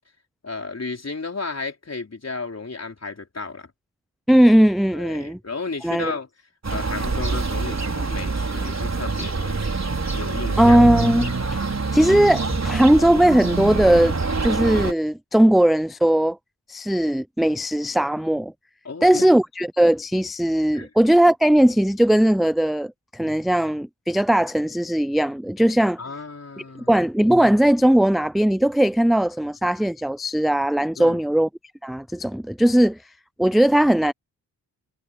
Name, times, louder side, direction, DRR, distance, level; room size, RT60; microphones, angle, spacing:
voice 1, 0.4-3.7 4.9-6.3 6.7-9.8 10.1-11.0 18.8-19.3 20.7-20.9 26.0-26.9 31.0-31.2, left 4 dB, 40° left, 4.5 m, -33 dB
voice 2, 4.3-5.4 5.8-6.1 10.6-11.6 11.9-14.2 14.4-16.4 16.7-18.5 19.0-26.0 26.9-31.5 31.8-33.0 33.4-34.1, right 1 dB, ahead, 0.5 m, -18 dB
sound 1, 6.6-14.9, right 3 dB, 40° right, 5.1 m, -25 dB
cardioid pair, 60°, 40 cm